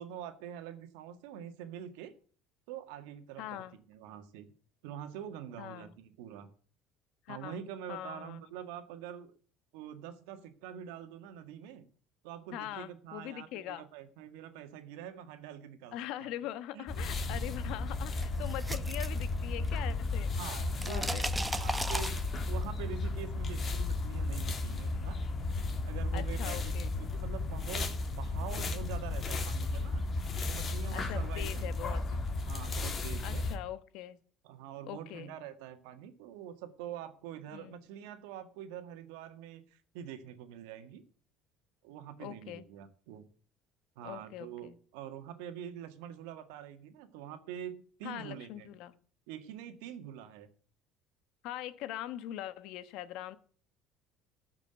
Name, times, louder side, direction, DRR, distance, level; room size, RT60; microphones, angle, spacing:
voice 1, 0.0-2.1 2.7-4.5 4.8-6.5 7.3-9.3 9.7-11.9 12.2-16.3 16.7-16.8 20.4-21.3 21.6-22.2 22.5-25.2 25.9-30.0 30.5-32.2 32.5-33.5 34.4-41.0 41.8-43.2 44.0-48.8 49.3-50.5, right 9 dB, 90° right, 8 dB, 1.9 m, -45 dB
voice 2, 3.4-3.8 5.6-5.9 7.3-7.6 7.9-8.4 12.5-13.8 15.9-20.3 20.9-21.3 26.1-26.9 30.9-32.0 33.2-34.2 34.9-35.3 37.5-37.8 42.2-42.6 44.0-44.7 48.0-48.9 51.4-53.4, left 13 dB, 70° left, 14 dB, 1.1 m, -42 dB
sound 1, 16.9-33.6, left 3 dB, 35° left, 2.2 m, -34 dB
sound 2, 18.2-19.9 20.2-22.6, right 1 dB, 10° right, 1.1 m, -37 dB
14.0 x 6.1 x 8.0 m, 0.44 s
cardioid pair, 115°, 0 cm